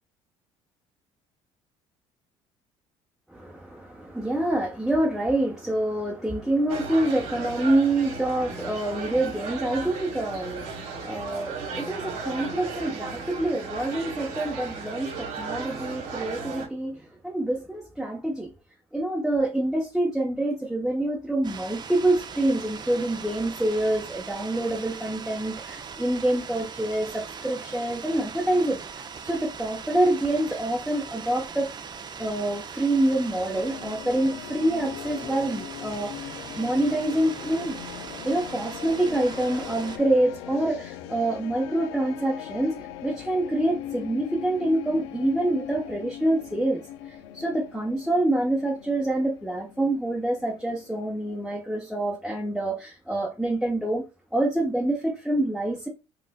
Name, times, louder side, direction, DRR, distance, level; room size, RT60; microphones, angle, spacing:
voice 1, 3.3-18.5 18.9-28.8 29.2-31.7 32.2-36.3 36.5-37.8 38.2-46.8 47.1-54.0 54.3-55.9, right 1 dB, ahead, 0.8 m, -26 dB
sound 1, 6.7-16.7, right 4 dB, 70° right, 1.4 m, -35 dB
sound 2, 21.4-40.0, right 6 dB, 30° right, 0.5 m, -40 dB
sound 3, 33.2-51.5, left 10 dB, 85° left, 0.4 m, -40 dB
4.2 x 2.4 x 2.2 m
supercardioid pair, 70°, 14 cm